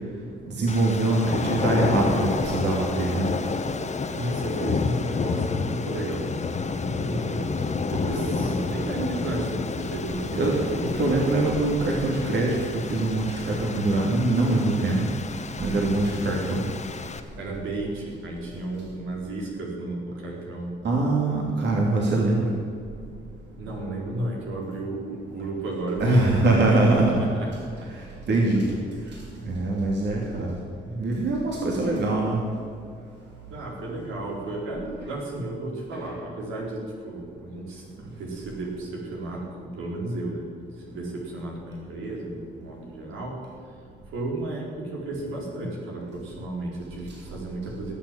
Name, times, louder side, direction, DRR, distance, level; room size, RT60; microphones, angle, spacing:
voice 1, 0.5-3.3 10.3-10.6 10.9-15.1 15.6-16.7 20.8-22.5 26.0-27.2 27.9-28.8 29.4-30.6 30.9-32.4, right 2 dB, 60° right, -2 dB, 2.9 m, -23 dB
sound 1, 0.7-17.2, left 4 dB, 35° left, 1.3 m, -30 dB
voice 2, 4.2-6.4 6.9-7.6 7.9-10.8 17.4-20.8 23.6-26.4 26.7-27.5 27.8-27.9 33.5-37.8 38.2-40.5 40.8-43.7 44.1-47.9, right 1 dB, 85° right, -2 dB, 4.4 m, -33 dB
18.5 x 7.4 x 9.1 m, 2.3 s
cardioid pair, 90°, 20 cm